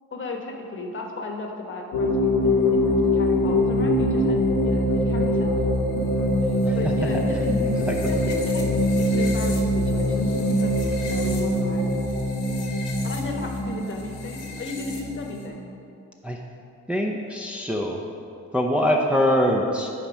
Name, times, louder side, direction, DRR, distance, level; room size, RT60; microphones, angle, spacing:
voice 1, 0.1-4.4 4.6-5.5 5.9-6.0 6.4-7.6 8.1-12.1 13.0-15.7, left 2 dB, 40° left, 2 dB, 1.1 m, -35 dB
sound 1, 1.9-15.5, left 1 dB, 80° left, 1.3 m, -23 dB
voice 2, 16.9-18.0 18.5-19.9, equal, 5° right, 0 dB, 0.6 m, -23 dB
9.0 x 4.2 x 6.1 m, 2.6 s
cardioid pair, 90°, 30 cm